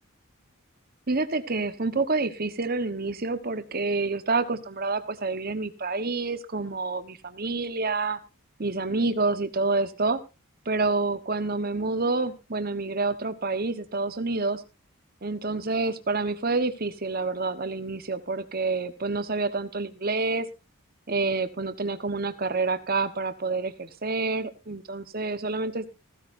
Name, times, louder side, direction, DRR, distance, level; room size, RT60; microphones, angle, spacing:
voice 1, 1.1-8.2 8.6-10.2 10.6-14.6 15.2-20.5 21.1-25.9, right 3 dB, 45° right, 10 dB, 1.1 m, -28 dB
15.5 x 15.0 x 2.6 m, 0.27 s
head